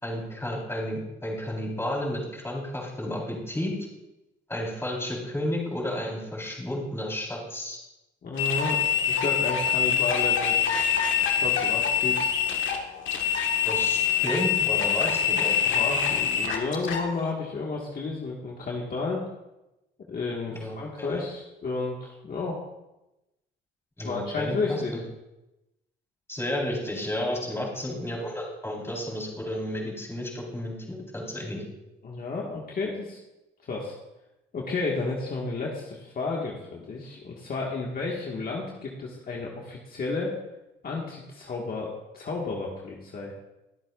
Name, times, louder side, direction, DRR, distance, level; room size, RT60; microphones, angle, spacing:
voice 1, 0.0-3.7 4.5-7.8 13.6-15.6 20.5-21.3 24.0-24.8 26.3-31.6, left 1 dB, 10° left, -3 dB, 4.2 m, -32 dB
voice 2, 8.2-10.9 11.3-12.3 15.6-19.2 20.1-22.6 24.0-24.9 32.0-33.2 33.7-33.9 34.5-40.3 40.8-41.9 42.1-43.3, left 3 dB, 50° left, -2 dB, 1.8 m, -32 dB
sound 1, 8.4-17.1, left 8 dB, 75° left, 1.6 m, -25 dB
22.5 x 7.7 x 2.5 m, 0.97 s
cardioid pair, 90°, 20 cm